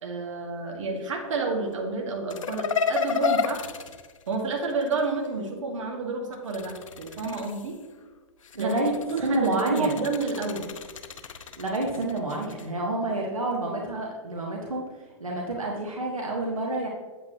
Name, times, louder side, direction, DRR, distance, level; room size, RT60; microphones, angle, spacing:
voice 1, 0.0-3.7 4.3-7.8 8.6-8.8 9.1-10.7, right 3 dB, 65° right, 1 dB, 1.8 m, -30 dB
sound 1, 2.3-5.1 6.3-7.9 8.4-12.7, left 6 dB, 70° left, 0.8 m, -32 dB
voice 2, 8.5-8.9 9.2-10.0 11.6-14.8 15.2-16.9, right 2 dB, 85° right, -1 dB, 1.5 m, -28 dB
8.4 x 8.3 x 3.0 m, 1.4 s
hypercardioid pair, 115°, 17 cm